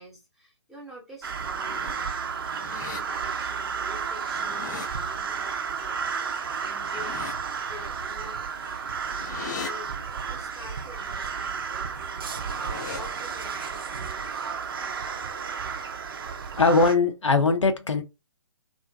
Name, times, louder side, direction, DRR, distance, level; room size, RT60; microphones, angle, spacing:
voice 1, 0.0-7.3 7.7-14.6, equal, ahead, 0.8 m, -46 dB
sound 1, 1.2-16.9, right 6 dB, 50° right, 0.5 m, -32 dB
sound 2, 1.4-2.0 2.4-3.0 4.1-4.9 6.7-7.3 8.6-9.7 12.2-13.0, left 6 dB, 40° left, 0.4 m, -39 dB
voice 2, 16.6-18.0, left 3 dB, 80° left, 0.6 m, -20 dB
2.6 x 2.4 x 2.2 m
figure-of-eight pair, 140°, 15 cm